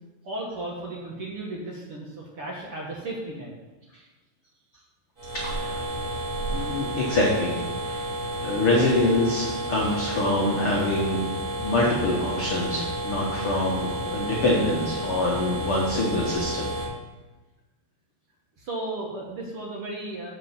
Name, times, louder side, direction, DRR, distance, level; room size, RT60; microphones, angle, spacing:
voice 1, 0.2-3.5 18.6-20.3, right 2 dB, 65° right, -3 dB, 1.4 m, -34 dB
sound 1, 5.2-16.9, right 1 dB, 25° right, 1.9 m, -31 dB
voice 2, 5.4-5.9 6.5-8.0 8.4-11.3 11.6-16.7, left 1 dB, 70° left, -3 dB, 1.3 m, -25 dB
7.6 x 6.7 x 7.4 m, 1.2 s
omnidirectional pair, 4.6 m